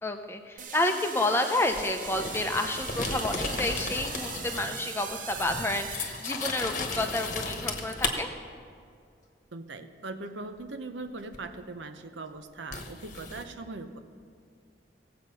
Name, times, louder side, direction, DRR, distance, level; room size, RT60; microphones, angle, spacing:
voice 1, 0.0-8.3, left 2 dB, 15° left, 5 dB, 0.7 m, -30 dB
sound 1, 0.6-6.8, right 6 dB, 45° right, 0.7 m, -40 dB
sound 2, 1.7-4.8 5.1-8.1 11.3-11.4 12.7-13.4, left 3 dB, 40° left, 1.1 m, -35 dB
voice 2, 9.5-14.0, right 3 dB, 80° right, 8 dB, 0.8 m, -40 dB
17.5 x 7.9 x 5.6 m, 2.3 s
head